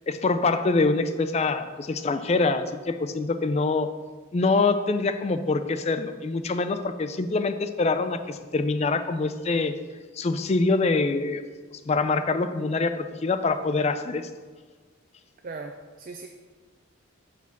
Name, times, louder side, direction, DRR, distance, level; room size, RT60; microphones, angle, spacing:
voice 1, 0.1-3.9 4.3-9.8 10.1-11.4 11.7-14.3, left 3 dB, 30° left, 9 dB, 0.3 m, -25 dB
voice 2, 15.4-16.3, right 3 dB, 40° right, 4 dB, 0.4 m, -38 dB
5.7 x 4.7 x 5.9 m, 1.4 s
head